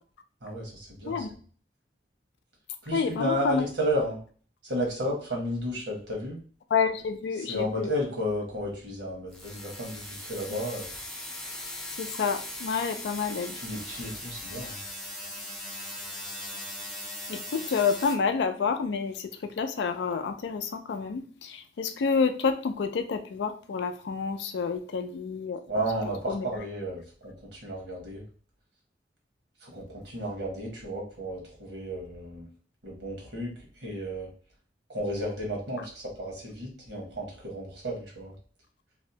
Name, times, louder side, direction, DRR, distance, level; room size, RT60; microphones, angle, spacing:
voice 1, 0.4-1.3 2.8-4.2 4.6-6.4 7.3-10.9 13.6-14.8 25.7-28.2 29.6-32.5 32.8-34.3 34.9-38.3, equal, 85° right, -1 dB, 1.1 m, -33 dB
voice 2, 2.9-3.7 6.7-7.9 12.0-13.6 17.3-25.6 26.3-26.5, left 5 dB, 75° left, 7 dB, 0.4 m, -29 dB
sound 1, 9.3-18.1, left 1 dB, 5° left, 0.4 m, -39 dB
2.6 x 2.1 x 2.7 m, 0.43 s
head